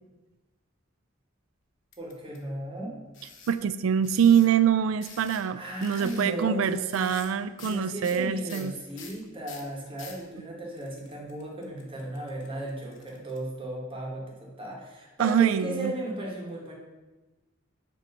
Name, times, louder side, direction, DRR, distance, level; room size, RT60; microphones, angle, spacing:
sound 1, 1.9-2.4 3.1-3.6 4.0-4.5 5.0-5.5 5.8-6.3 6.9-7.3 7.6-7.8 8.0-10.2 10.8-13.4, left 5 dB, 65° left, 0.9 m, -47 dB
voice 1, 2.0-2.9 5.6-7.1 7.6-16.7, right 1 dB, 25° right, -3 dB, 1.4 m, -35 dB
voice 2, 3.5-8.7 15.2-15.9, right 8 dB, 85° right, 14 dB, 0.3 m, -24 dB
6.8 x 3.0 x 5.3 m, 1.2 s
head